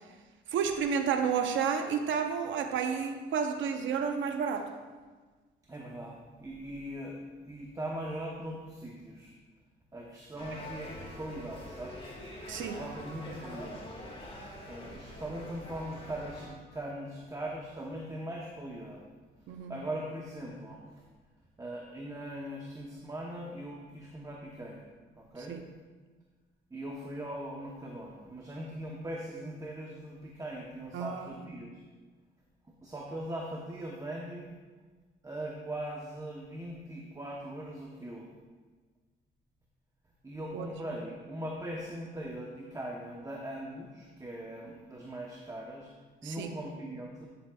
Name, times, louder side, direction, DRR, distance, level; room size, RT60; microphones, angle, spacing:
voice 1, 0.5-4.7 12.5-12.8 19.5-19.8 25.5-25.6 30.9-31.3 40.5-40.7 46.2-46.6, right 6 dB, 75° right, 6 dB, 0.7 m, -31 dB
voice 2, 5.7-7.2 7.4-9.3 9.9-12.1 12.6-14.1 14.7-19.0 19.5-21.0 21.6-24.9 25.2-25.6 26.7-31.8 32.8-34.6 35.2-38.3 40.2-45.9 46.2-47.3, right 1 dB, 15° right, -2 dB, 0.9 m, -40 dB
sound 1, 10.4-16.5, left 1 dB, 25° left, 1.8 m, -45 dB
11.0 x 7.0 x 2.3 m, 1.4 s
cardioid pair, 90°, 20 cm